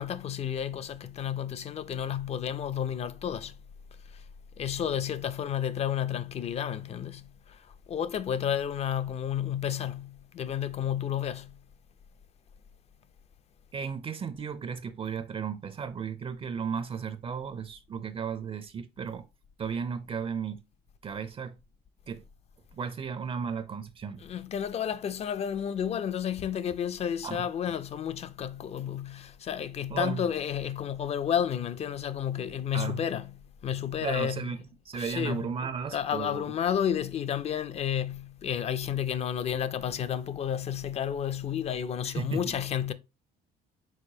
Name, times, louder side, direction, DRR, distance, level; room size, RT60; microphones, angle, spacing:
voice 1, 0.0-3.5 4.6-7.2 7.9-11.5 24.2-33.3 33.6-34.5 34.9-35.5 35.9-42.9, left 9 dB, 40° left, 0.4 m, -31 dB
voice 2, 13.7-19.3 19.6-20.6 21.0-21.6 22.1-22.2 22.7-24.2 27.2-27.5 29.9-30.2 32.7-33.0 34.0-36.4 42.0-42.5, right 6 dB, 35° right, 0.4 m, -35 dB
4.7 x 4.2 x 2.7 m
cardioid pair, 110°, 17 cm